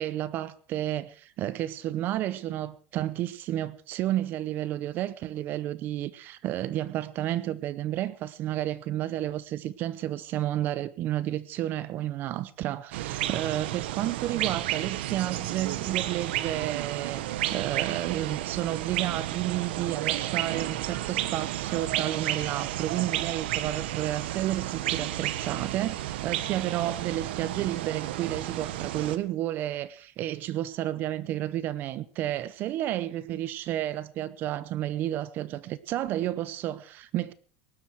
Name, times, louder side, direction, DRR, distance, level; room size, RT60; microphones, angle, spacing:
voice 1, 0.0-37.3, right 13 dB, 35° right, 0.7 m, -31 dB
sound 1, 12.9-29.2, right 14 dB, 90° right, 1.1 m, -32 dB
19.0 x 12.0 x 4.6 m
supercardioid pair, 165°, 6 cm